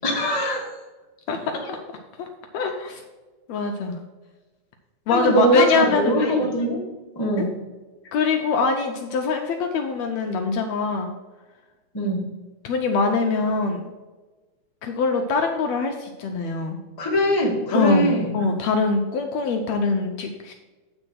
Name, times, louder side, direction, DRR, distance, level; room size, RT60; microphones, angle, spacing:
voice 1, 0.0-0.7 5.1-6.8 7.1-7.5 11.9-12.3 17.0-18.3, right 1 dB, 35° left, -2 dB, 0.3 m, -22 dB
voice 2, 1.3-1.8 2.2-2.3 2.5-3.0 3.5-4.0 5.1-6.2 7.4-7.5 8.1-11.1 12.6-13.8 14.8-16.8 17.7-20.5, left 4 dB, 75° left, 3 dB, 1.7 m, -23 dB
8.8 x 4.4 x 6.2 m, 1.2 s
omnidirectional pair, 3.7 m